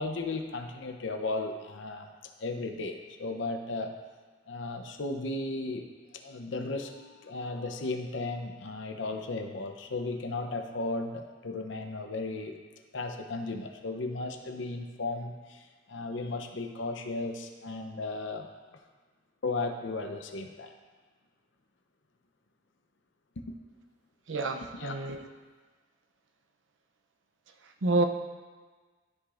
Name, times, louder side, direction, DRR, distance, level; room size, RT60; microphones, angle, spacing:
voice 1, 0.0-2.1 2.4-3.9 4.5-12.5 12.9-18.5 19.4-20.7 23.4-23.6 24.7-24.9, left 2 dB, 75° left, 5 dB, 0.7 m, -35 dB
voice 2, 24.3-25.2 27.8-28.0, right 2 dB, 80° right, 5 dB, 0.6 m, -28 dB
13.0 x 4.9 x 2.5 m, 1.4 s
head